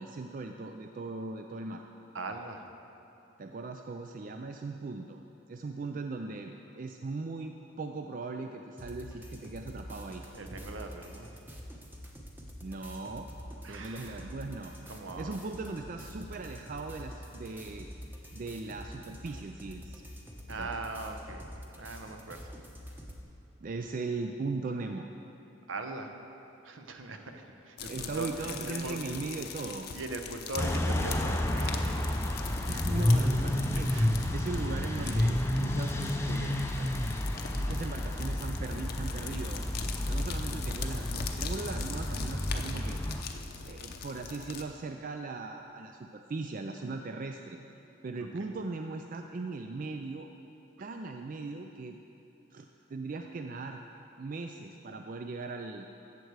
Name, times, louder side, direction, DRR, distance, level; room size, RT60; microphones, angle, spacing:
voice 1, 0.0-1.9 3.4-5.2 5.5-10.2 12.6-13.3 13.7-14.7 15.2-17.9 18.3-20.0 20.5-20.7 23.6-25.1 27.9-29.9 32.7-33.9 34.3-36.6 37.6-39.7 40.0-43.0 43.6-47.6 48.0-50.3 50.8-52.0 52.5-52.6 52.9-53.8 54.2-55.9, right 3 dB, 40° right, 5 dB, 0.4 m, -39 dB
voice 2, 2.1-2.6 10.1-11.3 13.6-14.3 14.9-15.3 20.5-21.4 21.7-22.4 25.7-26.1 26.6-28.3 28.6-29.0 29.9-32.2 33.9-34.1 35.0-35.2 36.8-36.9, right 3 dB, 70° right, 5 dB, 0.9 m, -40 dB
sound 1, 8.8-23.2, equal, 10° right, 0.9 m, -46 dB
sound 2, 27.8-44.6, left 6 dB, 50° left, 0.7 m, -42 dB
sound 3, 30.6-43.2, left 1 dB, 15° left, 0.5 m, -30 dB
13.5 x 8.0 x 4.7 m, 2.9 s
head